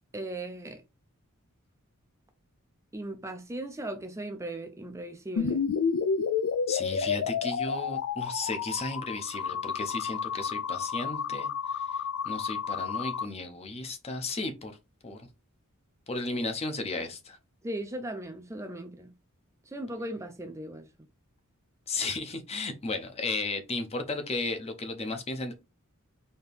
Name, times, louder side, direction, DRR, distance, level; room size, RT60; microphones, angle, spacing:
voice 1, 0.1-0.8 2.9-5.6 17.6-19.1 19.7-20.9, right 1 dB, 15° right, 0.4 m, -37 dB
sound 1, 5.4-13.2, left 6 dB, 65° left, 0.4 m, -30 dB
voice 2, 6.7-14.7 15.0-15.2 16.1-17.4 21.9-25.5, left 3 dB, 30° left, 0.7 m, -34 dB
4.2 x 2.8 x 3.4 m
head